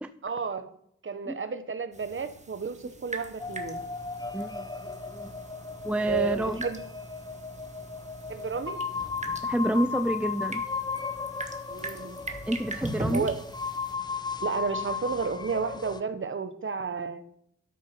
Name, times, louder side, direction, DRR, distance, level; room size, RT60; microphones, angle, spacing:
voice 1, 0.2-0.7 1.0-3.8 6.0-6.8 8.3-8.8 11.7-12.2 13.1-13.5 14.4-17.2, right 5 dB, 40° right, 10 dB, 1.1 m, -32 dB
sound 1, 1.9-13.9, right 2 dB, 25° right, 1.5 m, -41 dB
sound 2, 3.4-16.0, left 5 dB, 15° left, 0.8 m, -36 dB
voice 2, 4.3-4.7 5.1-5.3 5.8-6.7 9.4-10.6 12.5-13.3, right 1 dB, 5° right, 10 dB, 0.4 m, -28 dB
13.0 x 6.7 x 6.0 m, 0.67 s
wide cardioid pair, 140°, 30 cm